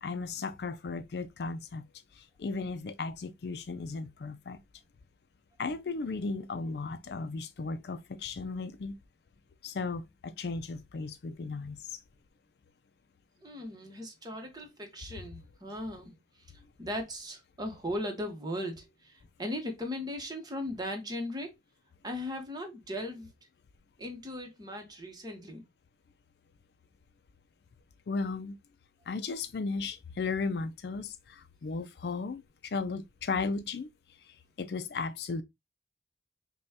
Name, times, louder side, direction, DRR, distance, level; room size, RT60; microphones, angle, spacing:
voice 1, 0.0-1.8 2.1-4.6 5.6-9.0 9.6-12.0 28.1-28.6 29.1-33.9 34.2-35.4, left 4 dB, 65° left, 0.4 m, -35 dB
voice 2, 13.4-16.2 16.8-21.5 22.0-23.3 24.0-25.6, left 1 dB, 25° right, 0.9 m, -38 dB
5.3 x 2.2 x 2.7 m
head